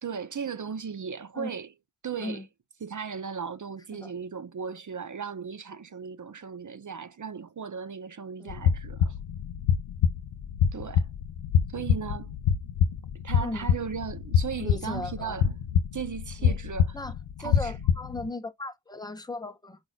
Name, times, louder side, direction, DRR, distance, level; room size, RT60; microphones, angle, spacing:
voice 1, 0.0-1.7 2.0-2.4 2.8-9.2 10.7-11.1 11.7-12.3 13.2-15.5 15.9-17.0 17.4-17.7, right 6 dB, 40° right, 0.6 m, -36 dB
sound 1, 8.5-18.3, left 8 dB, 85° left, 0.6 m, -26 dB
voice 2, 14.6-15.4 16.4-16.6 16.9-19.8, left 2 dB, 10° left, 0.8 m, -37 dB
4.7 x 3.9 x 2.2 m
wide cardioid pair, 75°, 46 cm